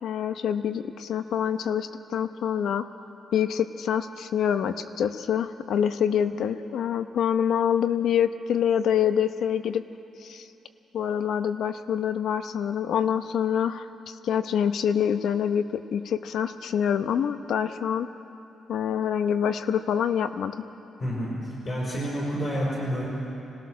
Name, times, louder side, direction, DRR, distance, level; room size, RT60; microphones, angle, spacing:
voice 1, 0.0-2.9 3.3-9.8 10.2-10.5 10.9-18.1 18.7-20.7, left 8 dB, 65° left, 10 dB, 0.8 m, -26 dB
voice 2, 21.0-23.1, equal, 35° left, -6 dB, 4.9 m, -29 dB
25.0 x 19.0 x 6.5 m, 3.0 s
cardioid pair, 175°, 0 cm